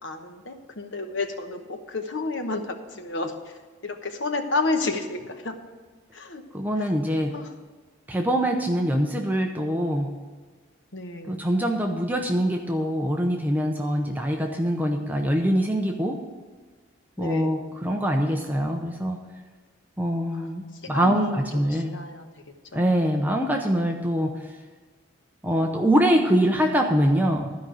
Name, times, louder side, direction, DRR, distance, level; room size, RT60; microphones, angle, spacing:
voice 1, 0.0-5.5 6.1-6.4 6.8-6.9 7.3-7.5 10.9-11.5 17.2-17.7 20.3-20.5 20.8-22.3 22.7-22.8, left 2 dB, 65° left, 6 dB, 1.1 m, -31 dB
voice 2, 6.5-7.3 8.1-10.1 11.3-16.2 17.2-19.2 20.0-21.9 22.7-24.5 25.4-27.5, equal, 10° right, 2 dB, 0.7 m, -24 dB
12.5 x 5.4 x 7.6 m, 1.4 s
head